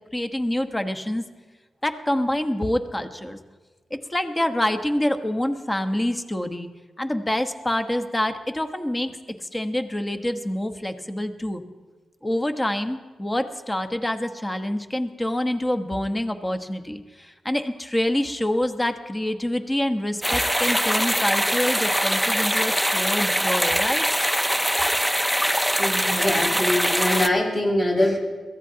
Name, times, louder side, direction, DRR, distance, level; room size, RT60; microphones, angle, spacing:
voice 1, 0.1-1.2 1.8-3.4 3.9-6.7 7.0-9.2 9.4-11.6 12.2-24.0, left 1 dB, 20° left, 7 dB, 1.2 m, -26 dB
sound 1, 20.2-27.3, equal, ahead, 0.6 m, -23 dB
voice 2, 25.8-28.2, left 1 dB, 45° left, -3 dB, 5.7 m, -23 dB
22.5 x 15.0 x 2.9 m, 1.3 s
cardioid pair, 55°, 0 cm